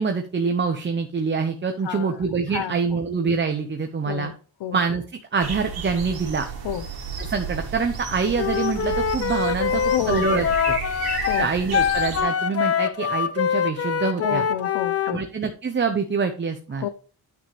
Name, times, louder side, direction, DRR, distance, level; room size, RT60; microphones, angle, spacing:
voice 1, 0.0-4.3 4.7-5.0 5.3-6.5 7.2-10.8 11.4-14.5 15.1-16.9, right 5 dB, 25° right, 0.8 m, -25 dB
voice 2, 1.8-2.2 2.5-2.7 4.0-4.3 4.6-4.8 6.6-6.9 9.7-10.5 11.2-11.5 14.2-15.2 16.8-16.9, left 10 dB, 80° left, 0.8 m, -29 dB
sound 1, 5.4-12.2, right 5 dB, 60° right, 2.4 m, -32 dB
Wind instrument woodwind instrument, 8.4-15.2, left 7 dB, 35° left, 0.6 m, -24 dB
9.4 x 5.8 x 3.3 m
wide cardioid pair, 155°, 42 cm